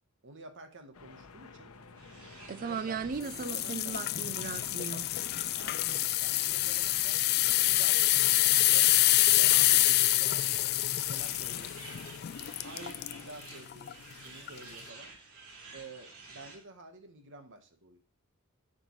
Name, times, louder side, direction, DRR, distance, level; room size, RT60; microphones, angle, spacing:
voice 1, 0.2-1.7 2.6-4.0 5.5-8.9 9.3-11.7 12.6-15.1 15.7-18.0, right 2 dB, 60° right, 1.2 m, -50 dB
sound 1, 0.9-13.3, left 4 dB, 80° left, 0.8 m, -52 dB
sound 2, 1.9-16.6, right 3 dB, 85° right, 3.3 m, -52 dB
voice 2, 2.5-5.1, right 5 dB, 40° right, 0.4 m, -37 dB
sound 3, 3.3-13.2 13.7-13.9 14.5-14.6, left 16 dB, 45° left, 0.3 m, -26 dB
8.0 x 5.2 x 3.1 m
head